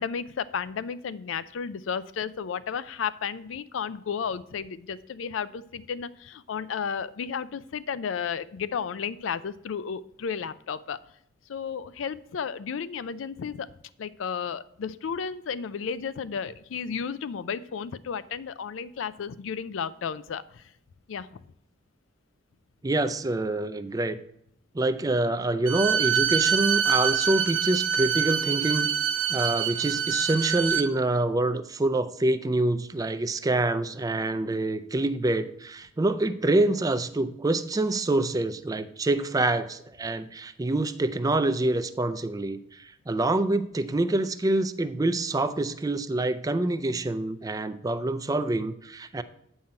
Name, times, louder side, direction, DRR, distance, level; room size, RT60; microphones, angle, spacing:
voice 1, 0.0-11.0 11.5-13.7 14.0-20.7 21.1-21.3, left 6 dB, 85° left, 16 dB, 0.4 m, -33 dB
voice 2, 22.8-24.2 24.7-28.9 29.3-49.2, right 2 dB, 20° right, 11 dB, 0.4 m, -26 dB
Bowed string instrument, 25.7-30.9, right 8 dB, 90° right, 0.7 m, -25 dB
8.7 x 5.6 x 4.4 m, 0.73 s
head